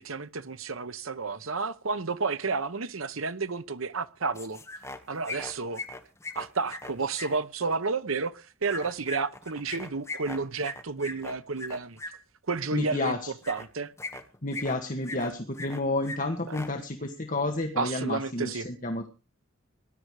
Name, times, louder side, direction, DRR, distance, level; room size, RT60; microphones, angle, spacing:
voice 1, 0.0-4.6 5.1-5.8 6.3-12.0 12.5-13.2 13.5-13.9 16.5-16.6 17.8-18.7, right 4 dB, 80° right, 1.1 m, -31 dB
sound 1, 4.3-5.0 5.2-7.3 8.7-12.1 13.4-13.6 14.0-14.7 15.0-15.8 16.0-16.2 16.4-16.7, left 2 dB, 15° left, 1.7 m, -38 dB
voice 2, 12.7-13.3 14.4-19.1, left 2 dB, 40° left, 1.7 m, -30 dB
19.5 x 11.5 x 4.9 m
head